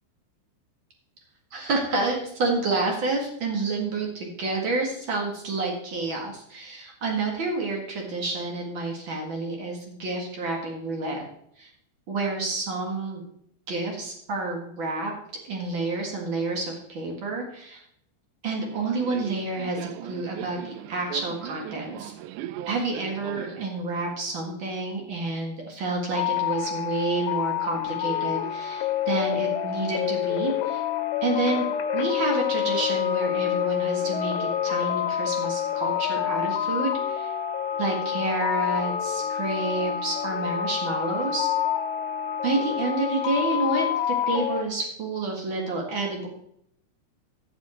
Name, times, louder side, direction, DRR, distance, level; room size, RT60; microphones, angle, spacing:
voice 1, 1.5-11.2 11.6-11.7 12.1-13.2 13.7-15.1 15.5-17.8 18.4-22.1 22.6-30.8 31.2-31.7 31.9-37.3 37.8-41.5 42.4-46.3, right 3 dB, 60° right, 0 dB, 1.2 m, -29 dB
Subway metro underground, 18.6-23.7, right 13 dB, 80° right, 2.6 m, -39 dB
sound 1, 26.2-44.6, left 10 dB, 80° left, 2.9 m, -27 dB
13.5 x 7.2 x 4.3 m, 0.72 s
omnidirectional pair, 5.3 m